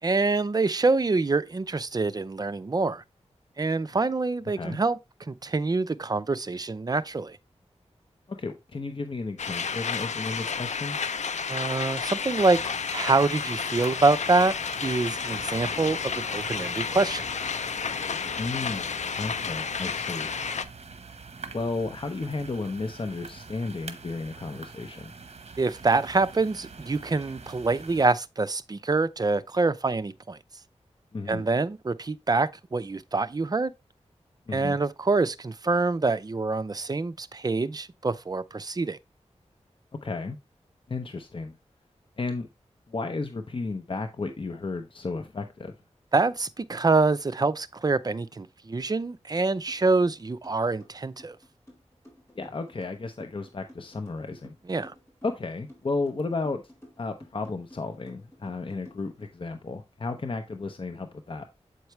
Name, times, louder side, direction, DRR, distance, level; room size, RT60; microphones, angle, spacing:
voice 1, 0.0-3.0 3.6-5.0 5.3-7.4 11.5-12.6 12.9-14.5 14.8-17.2 25.6-30.4 31.3-33.7 34.5-39.0 46.1-51.4 54.7-54.9, right 3 dB, 35° right, 0.5 m, -25 dB
voice 2, 8.3-11.0 18.3-20.3 21.5-25.1 31.1-31.5 34.5-34.8 40.0-40.4 40.9-41.6 42.2-42.5 42.9-45.7 52.4-54.5 55.2-56.6 57.0-61.5, left 3 dB, 45° left, 0.8 m, -33 dB
sound 1, 9.4-20.6, left 6 dB, 80° left, 0.5 m, -31 dB
sound 2, 12.3-28.1, right 4 dB, 60° right, 0.9 m, -45 dB
sound 3, 49.7-49.8 50.1-59.3, left 1 dB, 25° left, 4.5 m, -52 dB
7.9 x 4.6 x 3.1 m
wide cardioid pair, 70°, 12 cm